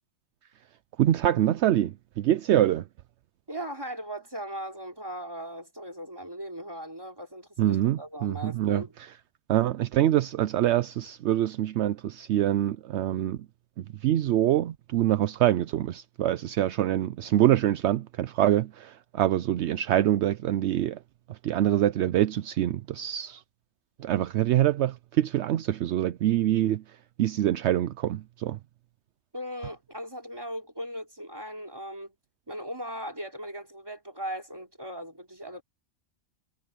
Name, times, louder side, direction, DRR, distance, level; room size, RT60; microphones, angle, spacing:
voice 1, 1.0-2.8 7.6-8.8 9.5-13.4 14.0-21.0 21.3-23.4 24.0-26.8 27.2-28.6, right 12 dB, 75° right, 0.8 m, -25 dB
voice 2, 3.5-9.0 29.3-32.2 32.5-35.6, equal, 20° right, 3.5 m, -38 dB
omnidirectional pair, 1.2 m